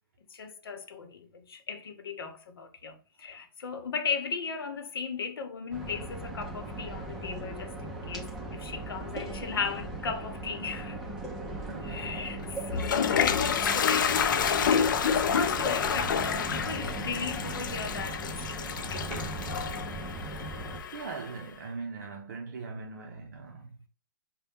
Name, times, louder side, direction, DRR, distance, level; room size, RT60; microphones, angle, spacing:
voice 1, 0.3-11.0 11.9-19.3, left 5 dB, 90° left, 0.8 m, -37 dB
sound 1, 5.7-20.8, right 2 dB, 5° right, 0.6 m, -38 dB
voice 2, 11.6-12.3 20.9-23.8, right 4 dB, 50° right, 0.6 m, -41 dB
Toilet flush, 12.4-21.3, left 7 dB, 60° left, 0.4 m, -29 dB
4.2 x 2.2 x 3.4 m
hypercardioid pair, 170°, 12 cm